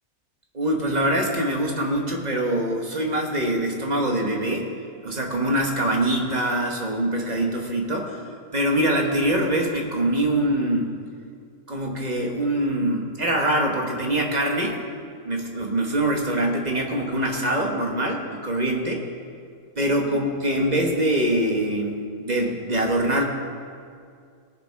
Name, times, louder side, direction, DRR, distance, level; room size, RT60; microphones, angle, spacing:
voice 1, 0.5-4.7 5.0-8.2 8.5-10.9 11.7-14.8 15.2-19.0 19.8-23.2, right 1 dB, 30° right, 1 dB, 1.3 m, -24 dB
18.5 x 6.8 x 4.6 m, 2.3 s
omnidirectional pair, 1.6 m